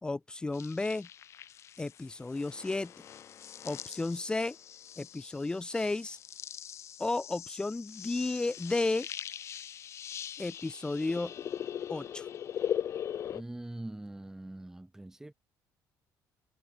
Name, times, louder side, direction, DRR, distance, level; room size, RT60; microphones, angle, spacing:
voice 1, 0.0-1.1 1.8-2.9 3.6-4.5 5.0-6.2 7.0-9.1 10.4-11.3 11.9-12.3, left 2 dB, 10° left, 3.5 m, -33 dB
sound 1, 0.5-13.4, left 9 dB, 45° left, 1.9 m, -41 dB
voice 2, 13.3-15.3, right 1 dB, 5° right, 3.9 m, -43 dB
cardioid pair, 150°, 7 cm